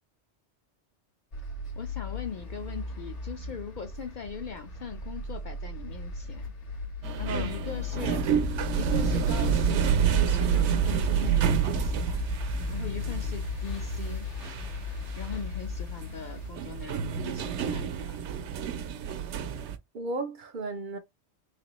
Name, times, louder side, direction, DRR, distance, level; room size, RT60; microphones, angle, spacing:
sound 1, 1.3-16.5, left 4 dB, 80° left, 1.5 m, -36 dB
voice 1, 1.8-6.5 7.2-8.3 8.7-12.3 12.7-14.3 15.2-18.2, left 6 dB, 60° left, 0.5 m, -40 dB
sound 2, 7.0-19.8, right 8 dB, 80° right, 0.9 m, -29 dB
voice 2, 7.3-7.6 19.9-21.0, right 3 dB, 55° right, 0.6 m, -34 dB
3.6 x 3.3 x 3.0 m
omnidirectional pair, 1.2 m